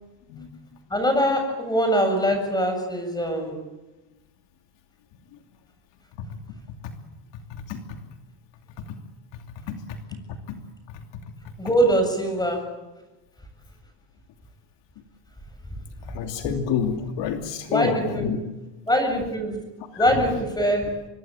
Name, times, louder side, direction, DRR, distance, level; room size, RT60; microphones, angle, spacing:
voice 1, 0.9-3.6 11.6-12.7 17.7-18.3 18.9-19.6 19.9-21.0, equal, 10° left, 6 dB, 7.2 m, -23 dB
voice 2, 16.1-18.4 20.0-20.1, left 7 dB, 60° left, 5 dB, 2.9 m, -28 dB
25.0 x 22.5 x 9.1 m, 1.1 s
cardioid pair, 125°, 50 cm